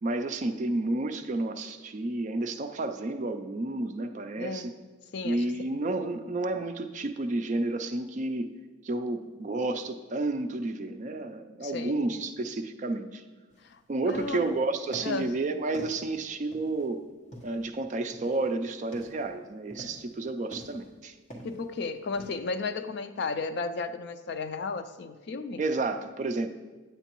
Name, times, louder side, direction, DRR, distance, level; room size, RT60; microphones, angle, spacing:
voice 1, 0.0-4.7 5.2-8.5 8.8-13.2 13.9-17.0 17.4-21.1 25.6-26.5, right 2 dB, 35° right, 8 dB, 0.4 m, -31 dB
voice 2, 4.4-4.7 5.1-5.4 5.7-5.8 11.6-12.0 13.6-13.8 14.1-14.5 15.0-15.3 21.4-25.6, left 4 dB, 55° left, 10 dB, 0.4 m, -34 dB
sound 1, 13.5-13.7 13.9-14.5 14.9-15.3 15.7-16.9 17.3-17.7 18.1-18.5 18.8-19.2 19.7-20.1 20.5-21.0 21.3-21.7 22.1-22.3, right 1 dB, 30° left, 1.2 m, -46 dB
8.8 x 8.0 x 3.0 m, 1.3 s
head